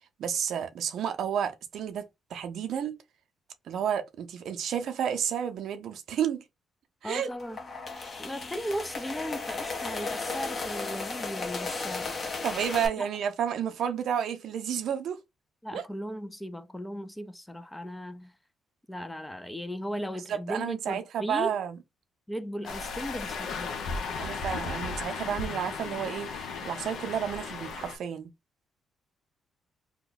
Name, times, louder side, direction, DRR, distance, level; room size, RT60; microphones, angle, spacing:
voice 1, 0.2-2.0 2.3-3.0 3.7-6.4 7.0-7.3 12.4-15.2 15.7-15.8 20.3-21.8 24.2-28.3, right 8 dB, 70° right, 0.6 m, -31 dB
voice 2, 7.0-7.6 8.2-12.2 13.0-13.1 15.6-18.3 18.9-21.6 22.3-23.7, equal, 10° left, 0.4 m, -37 dB
sound 1, 7.3-12.9, left 4 dB, 40° left, 0.9 m, -35 dB
sound 2, 22.6-28.0, left 4 dB, 75° left, 0.8 m, -35 dB
2.9 x 2.2 x 3.9 m
cardioid pair, 90°, 0 cm